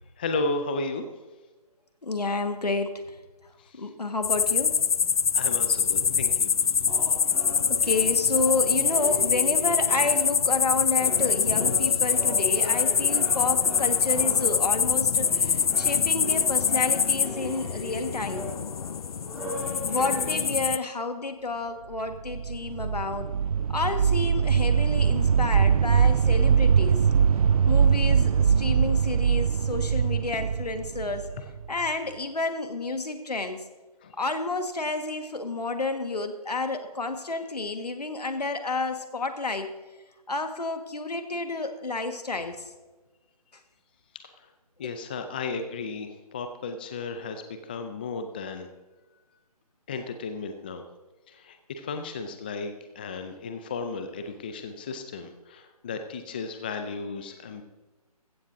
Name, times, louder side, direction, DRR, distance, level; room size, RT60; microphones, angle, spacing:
voice 1, 0.2-1.0 3.7-3.8 5.3-6.5 34.0-34.1 44.8-48.7 49.9-50.8 51.3-57.6, left 3 dB, 15° left, 7 dB, 0.4 m, -34 dB
voice 2, 2.0-3.1 3.8-4.7 7.7-18.4 19.8-23.3 23.7-27.0 27.7-31.2 31.7-33.6 34.2-39.7 40.3-42.6 44.8-44.9, left 3 dB, 90° left, 7 dB, 1.6 m, -30 dB
sound 1, 4.2-20.8, left 7 dB, 65° left, 0.5 m, -24 dB
sound 2, 6.9-10.6 10.9-20.4, equal, 5° right, 1.8 m, -39 dB
sound 3, 22.1-31.9, right 7 dB, 65° right, 0.4 m, -22 dB
15.0 x 14.5 x 2.7 m, 1.2 s
figure-of-eight pair, 155°, 20 cm